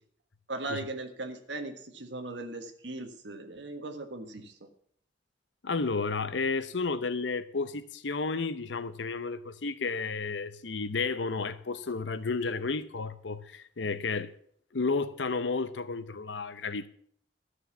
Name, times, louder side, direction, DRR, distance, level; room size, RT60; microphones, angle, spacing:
voice 1, 0.5-4.5, right 2 dB, 80° right, 1.5 m, -38 dB
voice 2, 5.6-14.3 14.7-16.9, left 4 dB, 85° left, 0.8 m, -32 dB
13.0 x 6.5 x 7.1 m
head